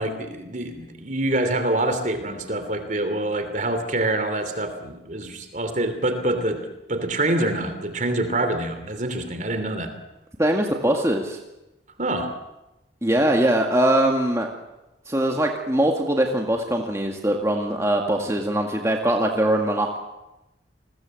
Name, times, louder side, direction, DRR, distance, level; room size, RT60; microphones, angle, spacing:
voice 1, 0.0-6.6 6.9-9.9 12.0-12.3, right 1 dB, 45° right, 8 dB, 3.0 m, -26 dB
voice 2, 10.4-11.4 13.0-14.5 15.1-20.0, right 1 dB, 15° right, 2 dB, 2.0 m, -22 dB
30.0 x 20.5 x 7.8 m, 0.96 s
head